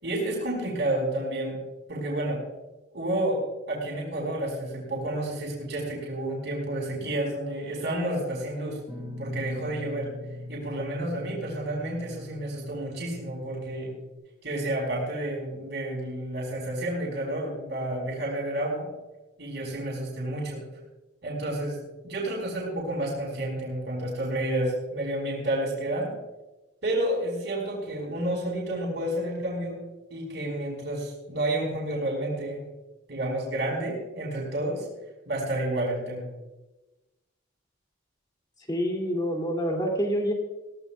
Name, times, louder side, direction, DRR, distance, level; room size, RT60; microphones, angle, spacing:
voice 1, 0.0-1.6 1.9-2.4 2.9-3.4 3.7-8.8 9.2-10.1 10.5-13.9 14.4-18.9 19.4-20.6 21.2-21.8 22.0-26.1 26.8-29.8 30.1-32.6 33.1-34.9 35.3-36.2, right 1 dB, 60° right, -3 dB, 5.3 m, -30 dB
Guitar, 8.9-14.1, left 1 dB, ahead, 5.0 m, -41 dB
voice 2, 38.7-40.3, equal, 20° left, 0 dB, 2.7 m, -27 dB
21.0 x 17.5 x 2.4 m, 1.1 s
head